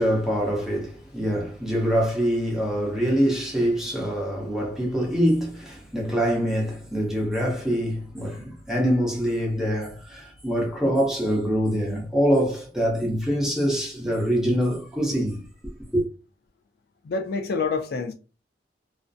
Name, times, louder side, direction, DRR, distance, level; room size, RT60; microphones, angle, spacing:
voice 1, 0.0-15.4 15.9-16.0, equal, 5° right, 0.8 m, -24 dB
voice 2, 17.0-18.1, left 4 dB, 60° left, 0.3 m, -27 dB
2.4 x 2.1 x 2.5 m
head